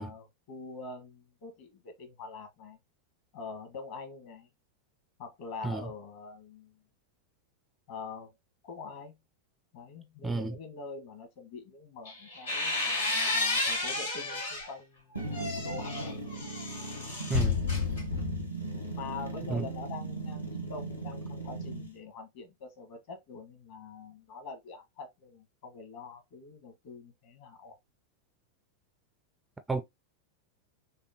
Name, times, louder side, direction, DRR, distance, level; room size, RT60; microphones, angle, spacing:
voice 1, 0.0-2.8 3.3-4.5 5.2-6.8 7.9-8.3 8.6-9.1 9.7-12.9 13.3-16.2 18.9-27.7, left 4 dB, 50° left, 1.4 m, -45 dB
voice 2, 10.2-10.6 17.3-17.6 19.5-19.7 29.7-29.8, right 3 dB, 10° right, 0.4 m, -31 dB
sound 1, 12.0-14.7 15.2-18.5, left 3 dB, 70° left, 2.6 m, -31 dB
sound 2, 15.1-21.9, right 3 dB, 85° left, 0.9 m, -38 dB
5.6 x 2.2 x 2.8 m
figure-of-eight pair, 90°, 0 cm